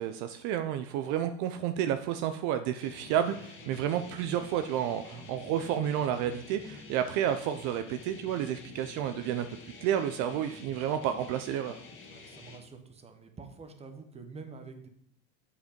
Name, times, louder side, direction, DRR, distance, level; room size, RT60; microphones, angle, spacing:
voice 1, 0.0-9.5 9.8-11.8, right 10 dB, 55° right, 9 dB, 0.6 m, -31 dB
sound 1, 2.8-12.6, left 4 dB, 35° left, 1.9 m, -48 dB
voice 2, 12.0-14.9, right 4 dB, 20° right, 7 dB, 1.1 m, -47 dB
8.1 x 5.0 x 5.1 m, 0.65 s
supercardioid pair, 120°, 35 cm